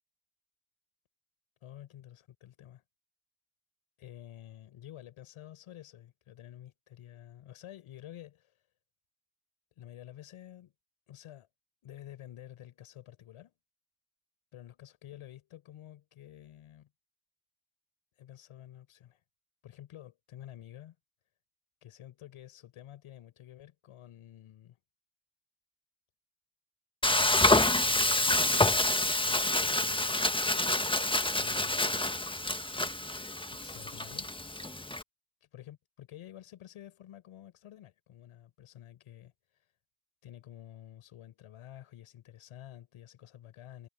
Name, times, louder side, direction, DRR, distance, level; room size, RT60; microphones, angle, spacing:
voice 1, 1.6-2.8 4.0-8.6 9.8-10.7 11.1-11.5 11.8-13.5 14.5-16.9 18.2-19.2 19.6-21.0 21.8-24.8 27.8-30.3 31.3-31.9 33.5-34.3 35.5-39.7 40.2-43.9, left 12 dB, 85° left, 6.5 m, -50 dB
Frying (food), 27.0-35.0, left 2 dB, 10° left, 1.5 m, -27 dB
supercardioid pair, 40°, 49 cm